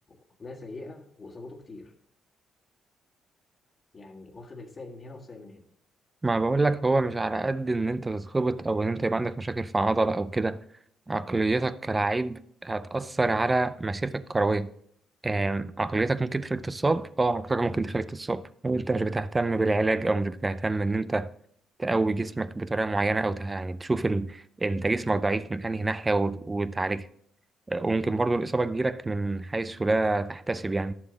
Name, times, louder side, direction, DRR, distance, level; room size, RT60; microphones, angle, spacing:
voice 1, 0.1-1.9 3.9-5.7, left 2 dB, 35° left, 1.7 m, -43 dB
voice 2, 6.2-10.6 11.1-14.7 15.2-21.3 21.8-27.1 27.7-30.9, right 2 dB, 20° right, 0.5 m, -27 dB
11.0 x 7.3 x 4.0 m
cardioid pair, 90°, 0 cm